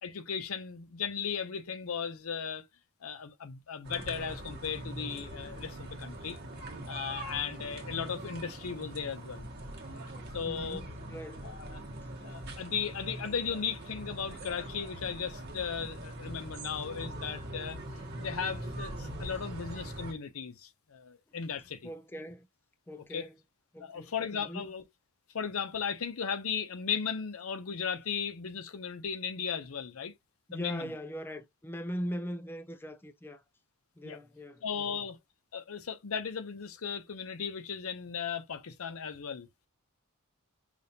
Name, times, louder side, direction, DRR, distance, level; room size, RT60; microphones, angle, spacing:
voice 1, 0.0-2.7 3.0-6.4 6.9-9.5 10.3-10.8 11.4-11.8 12.2-17.8 18.2-21.9 23.1-23.3 23.8-24.8 25.3-30.1 30.5-30.9 34.0-34.2 34.6-35.2 35.5-39.5, left 6 dB, 85° left, 0.7 m, -36 dB
sound 1, 3.8-20.1, right 1 dB, 50° right, 1.1 m, -42 dB
voice 2, 10.4-11.4 21.8-22.5 22.9-23.4 23.7-24.7 30.5-33.4 34.0-35.0, equal, 10° left, 0.3 m, -40 dB
5.1 x 2.4 x 2.8 m
head